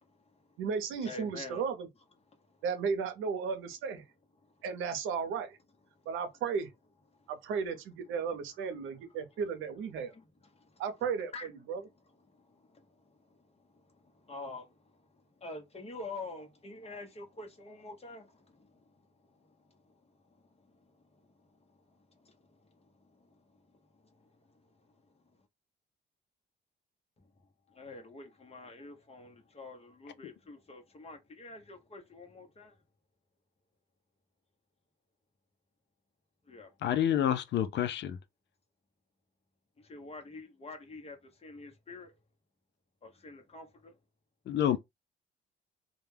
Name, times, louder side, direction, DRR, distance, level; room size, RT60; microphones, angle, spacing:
voice 1, 0.0-0.5 1.0-1.6 2.5-2.6 10.0-10.3 10.5-10.8 11.3-11.5 12.3-15.1 15.4-20.0 20.3-23.3 23.7-23.8 24.1-24.6 27.7-32.7 36.5-36.7 39.8-42.1 43.0-43.9, left 2 dB, 30° left, 0.8 m, -48 dB
voice 2, 0.6-1.9 2.6-4.0 4.6-5.6 6.1-6.7 7.3-10.1 10.8-11.8, right 6 dB, 90° right, 0.6 m, -34 dB
voice 3, 36.8-38.2 44.5-44.8, left 10 dB, 60° left, 0.4 m, -28 dB
2.3 x 2.1 x 3.2 m
cardioid pair, 90°, 20 cm